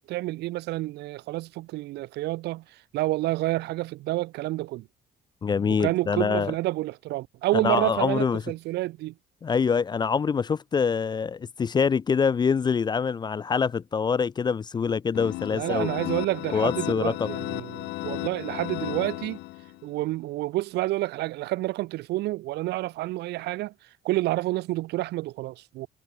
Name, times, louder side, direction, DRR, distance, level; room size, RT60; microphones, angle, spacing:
voice 1, 0.0-2.6 2.9-4.9 5.8-9.1 15.5-19.4 19.8-23.7 24.0-25.9, right 17 dB, 80° right, 1.2 m, -29 dB
voice 2, 5.4-6.5 7.5-8.4 9.4-15.9 16.5-17.3, left 6 dB, 25° left, 0.4 m, -25 dB
sound 1, 15.1-19.9, left 21 dB, 85° left, 0.5 m, -34 dB
cardioid pair, 110°, 17 cm